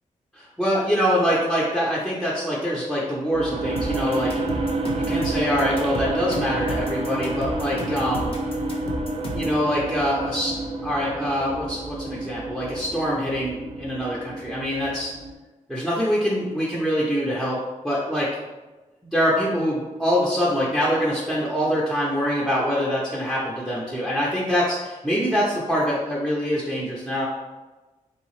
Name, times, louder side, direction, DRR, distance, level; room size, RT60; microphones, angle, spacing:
voice 1, 0.3-4.3 4.9-8.3 9.3-10.5 10.8-15.1 15.7-18.3 19.1-27.3, equal, ahead, -6 dB, 0.6 m, -24 dB
sound 1, 3.3-15.3, right 2 dB, 45° right, 0.5 m, -29 dB
sound 2, 3.8-9.6, equal, 45° left, 0.7 m, -33 dB
3.5 x 2.7 x 3.0 m, 1.2 s
wide cardioid pair, 110°, 13 cm